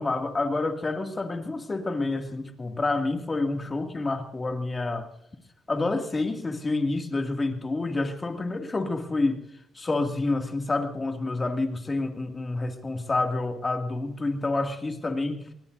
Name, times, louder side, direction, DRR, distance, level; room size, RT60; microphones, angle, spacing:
voice 1, 0.0-5.1 5.7-9.4 9.7-15.5, left 2 dB, 25° left, 5 dB, 2.3 m, -28 dB
23.5 x 20.5 x 2.7 m, 0.73 s
cardioid pair, 90°, 0 cm